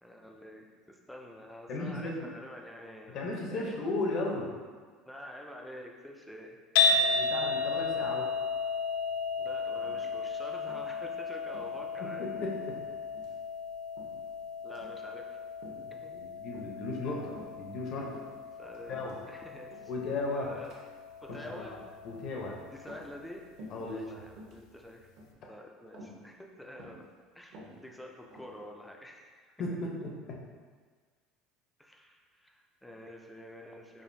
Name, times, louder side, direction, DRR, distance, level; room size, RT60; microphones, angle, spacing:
voice 1, 0.0-3.8 5.0-7.7 9.4-12.3 14.6-15.4 15.9-16.2 18.6-18.9 19.3-19.9 20.3-20.7 21.2-21.8 22.7-23.4 23.8-25.1 25.5-27.1 27.3-29.8 31.8-34.0, left 1 dB, 5° left, 0 dB, 0.4 m, -48 dB
voice 2, 1.7-2.3 3.1-4.5 6.8-6.9 7.1-8.3 12.2-12.7 16.1-17.3 17.6-18.1 18.9-19.2 19.9-20.5 21.3-21.8 22.0-22.5 23.7-24.2 29.6-30.1, left 2 dB, 50° left, -1 dB, 0.7 m, -35 dB
sound 1, 6.8-23.0, left 4 dB, 85° left, 0.3 m, -34 dB
sound 2, 9.8-10.3 10.7-11.0 11.4-11.7 12.3-12.9 13.1-13.4 14.0-14.3 14.7-15.0 15.6-15.9 16.5-16.9 17.3-17.6 18.0-19.3 19.7-20.0 20.5-20.8 21.2-21.6 22.1-22.4 22.8-23.3 23.6-23.9 24.3-24.6 25.2-25.5 25.9-26.2 26.8-27.1 27.4-28.6, equal, 60° right, 0.9 m, -50 dB
4.9 x 2.5 x 2.6 m, 1.5 s
cardioid pair, 140°, 0 cm